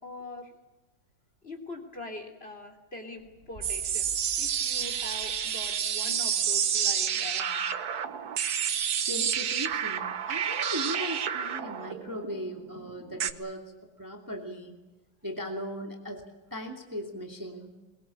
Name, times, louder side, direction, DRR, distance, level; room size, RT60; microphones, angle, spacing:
voice 1, 0.0-0.5 1.4-7.7, left 2 dB, 30° left, 2 dB, 3.5 m, -43 dB
sound 1, 3.2-6.0, equal, 30° right, 2.0 m, -51 dB
sound 2, 3.6-13.3, right 8 dB, 60° right, 1.4 m, -29 dB
voice 2, 9.1-14.8 15.2-17.7, equal, 10° right, 2 dB, 2.5 m, -38 dB
22.5 x 22.0 x 8.5 m, 1.1 s
omnidirectional pair, 2.1 m